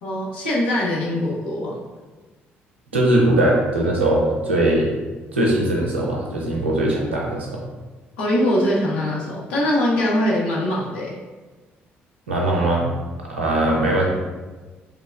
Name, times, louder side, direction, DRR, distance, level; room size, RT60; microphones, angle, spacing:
voice 1, 0.0-1.8 8.2-11.1, left 1 dB, 75° left, -5 dB, 0.8 m, -22 dB
voice 2, 2.9-4.9 5.3-7.6 12.3-12.9 13.3-14.1, right 1 dB, 85° right, -2 dB, 0.5 m, -20 dB
3.6 x 3.1 x 2.4 m, 1.3 s
figure-of-eight pair, 45°, 6 cm